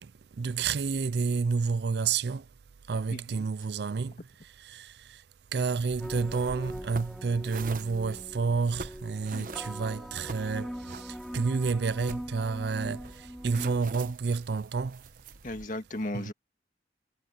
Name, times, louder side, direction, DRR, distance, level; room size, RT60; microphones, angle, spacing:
voice 1, 0.0-2.5 2.9-5.2 5.5-15.1 16.1-16.3, right 5 dB, 65° right, 0.4 m, -30 dB
voice 2, 3.1-3.4 9.3-9.5 15.4-16.3, left 1 dB, 50° left, 1.9 m, -36 dB
sound 1, 5.9-15.7, right 3 dB, 50° right, 1.0 m, -46 dB
sound 2, 6.0-14.1, equal, ahead, 3.1 m, -42 dB
head